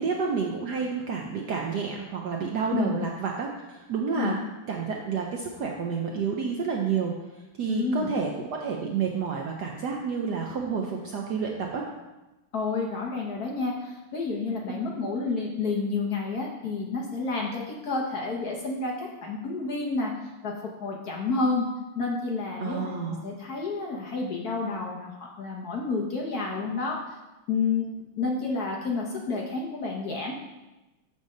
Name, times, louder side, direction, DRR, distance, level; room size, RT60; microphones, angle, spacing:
voice 1, 0.0-4.4 4.7-11.9 14.7-14.9 22.6-23.2, right 5 dB, 70° right, 0 dB, 1.0 m, -30 dB
voice 2, 7.7-8.1 12.5-20.1 20.4-21.6 22.0-27.0 27.5-27.9 28.2-30.3, left 4 dB, 55° left, -1 dB, 1.1 m, -30 dB
7.8 x 3.6 x 6.4 m, 1.0 s
omnidirectional pair, 2.4 m